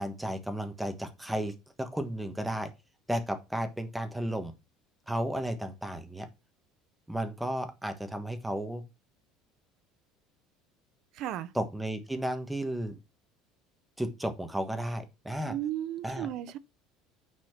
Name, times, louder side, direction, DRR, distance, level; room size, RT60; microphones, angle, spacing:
voice 1, 0.0-2.7 3.1-4.5 5.1-6.3 7.1-8.8 11.5-12.9 14.0-15.5 16.0-16.3, right 1 dB, 5° right, 1.3 m, -33 dB
voice 2, 11.2-11.5 15.5-16.6, right 12 dB, 50° right, 0.7 m, -34 dB
9.4 x 4.3 x 5.8 m
cardioid pair, 165°, 0 cm